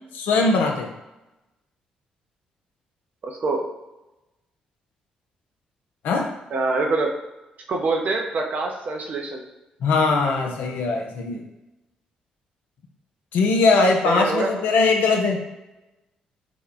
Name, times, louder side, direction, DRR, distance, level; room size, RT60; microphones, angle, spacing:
voice 1, 0.1-0.9 6.0-6.3 9.8-11.4 13.3-15.4, left 3 dB, 65° left, 2 dB, 0.5 m, -20 dB
voice 2, 3.2-3.6 6.5-7.1 7.7-9.4 14.0-14.5, right 3 dB, 50° right, 1 dB, 0.6 m, -25 dB
2.8 x 2.1 x 3.8 m, 0.98 s
figure-of-eight pair, 40°, 3 cm